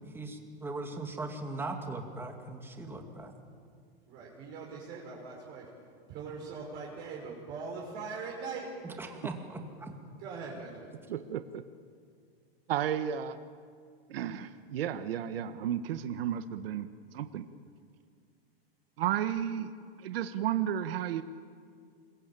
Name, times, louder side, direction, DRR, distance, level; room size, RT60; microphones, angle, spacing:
voice 1, 0.0-3.3 8.8-9.9, right 2 dB, 5° right, 3 dB, 2.5 m, -39 dB
voice 2, 4.1-5.7 6.1-8.7 10.2-10.9, right 4 dB, 35° right, -3 dB, 6.0 m, -41 dB
voice 3, 11.1-11.6 12.7-13.4 14.1-17.4 19.0-19.7 20.0-21.2, right 10 dB, 70° right, 10 dB, 1.4 m, -33 dB
26.5 x 22.5 x 9.0 m, 2.2 s
supercardioid pair, 160°, 30 cm